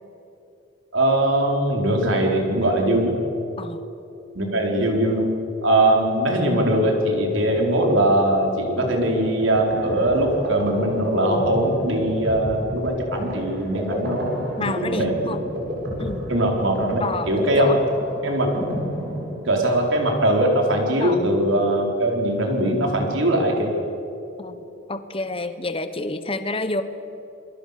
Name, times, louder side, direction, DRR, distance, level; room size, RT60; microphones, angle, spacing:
voice 1, 0.9-3.1 4.3-5.3 5.6-15.1 16.3-17.7 18.2-18.5 19.4-23.7, right 1 dB, 75° right, 1 dB, 4.5 m, -21 dB
sound 1, 9.2-19.8, equal, 55° right, 7.3 m, -30 dB
voice 2, 14.6-15.4 16.0-16.3 17.0-17.8 21.0-21.2 24.4-24.6 24.9-26.8, left 2 dB, 30° left, 10 dB, 1.2 m, -28 dB
27.5 x 22.5 x 6.8 m, 3.0 s
head